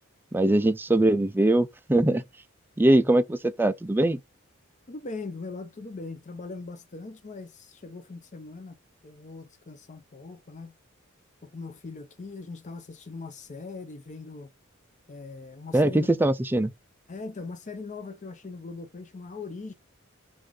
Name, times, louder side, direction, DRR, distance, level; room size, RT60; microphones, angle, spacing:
voice 1, 0.3-2.2 2.8-4.2 15.7-16.7, right 1 dB, 10° right, 0.4 m, -22 dB
voice 2, 4.9-8.7 9.0-10.7 11.4-14.5 15.1-16.1 17.1-19.7, left 3 dB, 35° left, 0.6 m, -40 dB
4.9 x 2.5 x 3.7 m
head